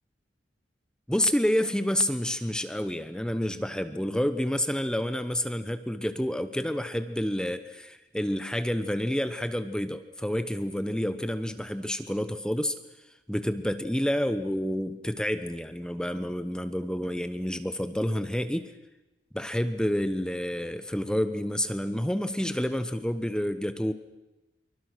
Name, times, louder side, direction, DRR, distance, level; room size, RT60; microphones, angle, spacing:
voice 1, 1.1-12.8 13.3-18.7 19.3-23.9, equal, 5° left, 10 dB, 0.9 m, -29 dB
26.5 x 24.0 x 6.2 m, 1.0 s
head